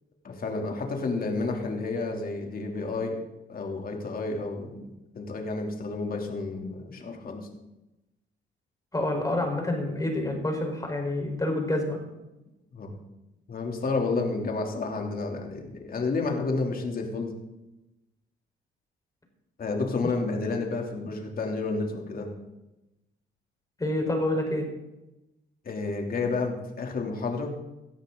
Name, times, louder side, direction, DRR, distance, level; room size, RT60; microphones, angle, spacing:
voice 1, 0.2-3.2 3.5-4.9 5.1-7.5 12.7-12.9 13.5-17.3 19.6-22.3 25.6-27.5, left 3 dB, 45° left, 2 dB, 3.1 m, -30 dB
voice 2, 8.9-12.0 23.8-24.6, left 1 dB, 15° left, 2 dB, 4.4 m, -28 dB
18.0 x 12.5 x 3.9 m, 0.97 s
cardioid pair, 90°, 20 cm